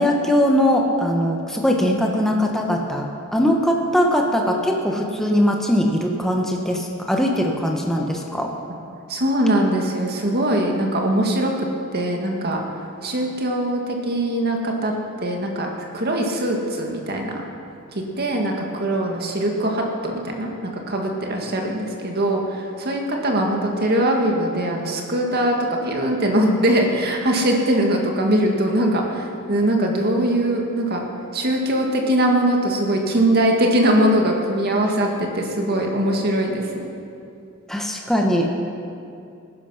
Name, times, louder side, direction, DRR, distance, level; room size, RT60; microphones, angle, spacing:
voice 1, 0.0-8.6 37.7-38.5, equal, ahead, 1 dB, 1.0 m, -20 dB
voice 2, 9.1-12.6 13.0-14.9 15.2-15.7 15.9-17.4 17.9-31.0 31.3-36.9, right 1 dB, 50° right, 1 dB, 2.0 m, -21 dB
18.5 x 10.5 x 5.8 m, 2.5 s
head